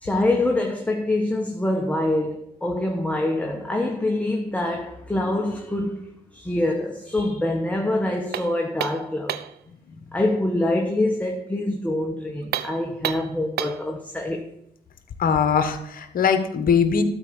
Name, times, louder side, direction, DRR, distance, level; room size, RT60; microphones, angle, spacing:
voice 1, 0.0-9.4 10.1-14.5, left 1 dB, 10° left, 1.3 m, -25 dB
sound 1, 8.3-9.6 12.4-13.9, right 11 dB, 75° right, 0.6 m, -30 dB
voice 2, 15.2-17.0, left 6 dB, 60° left, 1.4 m, -21 dB
12.5 x 4.7 x 7.2 m
cardioid pair, 75°, 17 cm